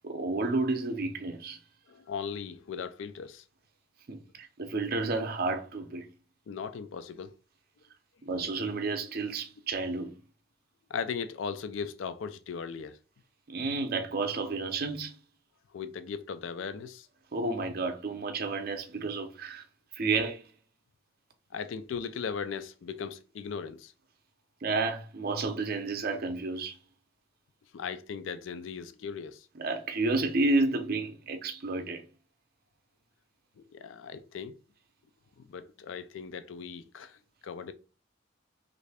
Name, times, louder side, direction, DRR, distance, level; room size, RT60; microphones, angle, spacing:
voice 1, 0.0-1.6 4.1-6.1 8.2-10.1 13.5-15.2 17.3-19.6 19.9-20.4 24.6-26.8 29.6-32.0, right 3 dB, 50° right, 0.6 m, -31 dB
voice 2, 1.9-3.4 6.5-7.3 10.9-13.0 15.7-17.1 21.5-23.9 27.7-29.5 33.6-34.6 35.5-37.7, left 6 dB, 65° left, 0.4 m, -38 dB
3.2 x 2.5 x 3.3 m
head